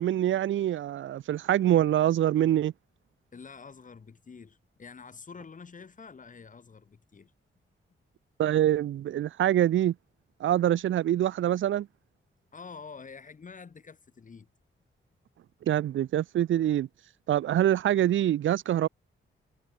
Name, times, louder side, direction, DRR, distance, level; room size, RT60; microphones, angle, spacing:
voice 1, 0.0-2.7 8.4-9.9 10.4-11.9 15.7-16.9 17.3-18.9, right 12 dB, 70° right, 0.5 m, -25 dB
voice 2, 3.3-7.3 12.5-14.5, left 5 dB, 40° left, 2.2 m, -47 dB
wide cardioid pair, 130°, 21 cm